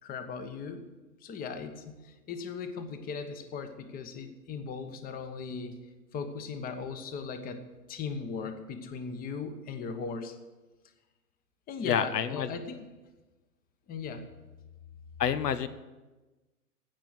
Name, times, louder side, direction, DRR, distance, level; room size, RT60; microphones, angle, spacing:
voice 1, 0.0-0.9 1.2-5.8 6.1-10.4 11.7-12.8 13.9-14.2, left 5 dB, 20° left, 9 dB, 1.0 m, -38 dB
voice 2, 11.8-12.5 15.2-15.7, left 8 dB, 80° left, 14 dB, 0.9 m, -28 dB
16.5 x 6.0 x 7.7 m, 1.2 s
hypercardioid pair, 120°, 48 cm